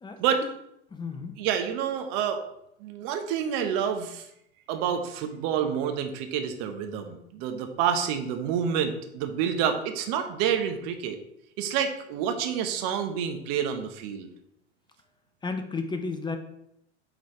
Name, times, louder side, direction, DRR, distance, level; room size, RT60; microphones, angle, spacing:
voice 1, 0.0-0.5 0.9-1.4 15.4-16.4, left 4 dB, 15° left, 6 dB, 0.7 m, -33 dB
voice 2, 1.4-2.4 2.8-4.2 4.7-11.2 11.6-14.3, right 8 dB, 50° right, 6 dB, 1.2 m, -28 dB
8.0 x 4.0 x 3.2 m, 0.77 s
hypercardioid pair, 100°, 35 cm